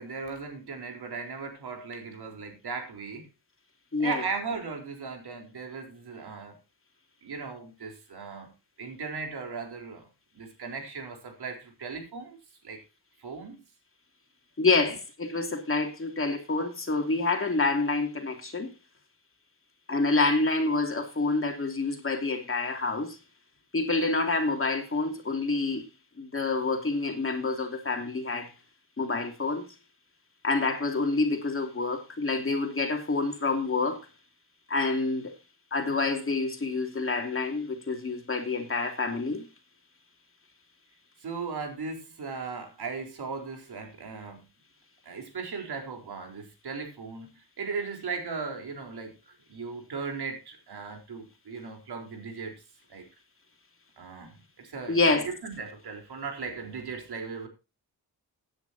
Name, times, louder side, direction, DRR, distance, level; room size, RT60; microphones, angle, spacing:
voice 1, 0.0-3.3 4.0-6.6 7.2-8.5 8.8-10.1 10.3-12.4 12.6-12.8 13.2-13.6 14.8-15.0 41.2-44.5 45.0-49.2 49.5-52.5 52.9-53.0 54.0-57.5, right 5 dB, 85° right, 4.2 m, -37 dB
voice 2, 3.9-4.2 14.6-18.7 19.9-23.2 23.7-25.8 26.2-28.5 29.0-29.7 30.4-34.0 34.7-35.3 35.7-39.5 54.9-55.3, left 3 dB, 35° left, 2.9 m, -27 dB
16.5 x 10.0 x 2.9 m
wide cardioid pair, 125°, 38 cm